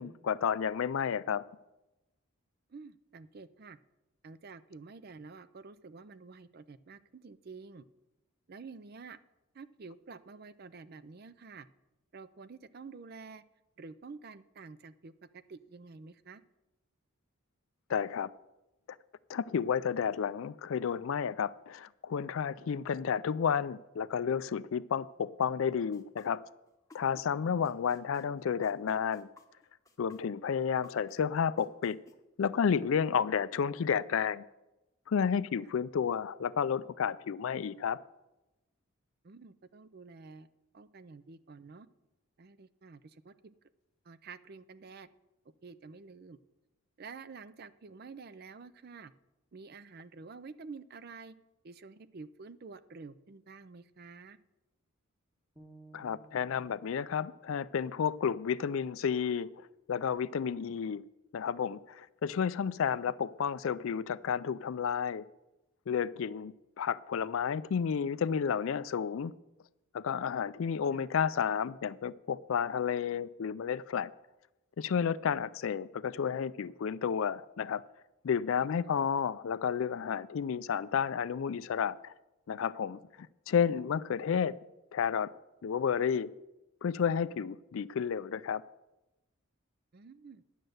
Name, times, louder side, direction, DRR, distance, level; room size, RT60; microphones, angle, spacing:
voice 1, 0.0-1.4 17.9-18.3 19.3-26.4 26.9-29.3 30.0-32.0 32.4-34.4 35.1-38.0 55.9-59.5 59.9-61.0 61.3-65.2 65.9-69.3 69.9-74.1 74.8-77.8 78.2-82.1 82.5-84.5 84.9-85.3 85.6-86.3 86.8-88.6, left 7 dB, 65° left, 0.4 m, -31 dB
voice 2, 2.7-3.8 4.2-7.9 8.5-9.2 9.5-11.7 12.1-13.4 13.8-16.4 35.6-35.7 39.2-40.5 40.7-41.9 42.4-43.5 44.0-45.1 45.6-46.4 47.0-49.1 49.5-51.4 51.6-54.4 70.9-71.0 78.6-79.0 89.9-90.4, right 4 dB, 45° right, 0.4 m, -49 dB
sound 1, 25.9-27.3 27.6-32.1, left 3 dB, 15° left, 0.8 m, -56 dB
sound 2, 55.6-59.7, right 2 dB, 15° right, 1.3 m, -60 dB
11.0 x 6.5 x 7.8 m
head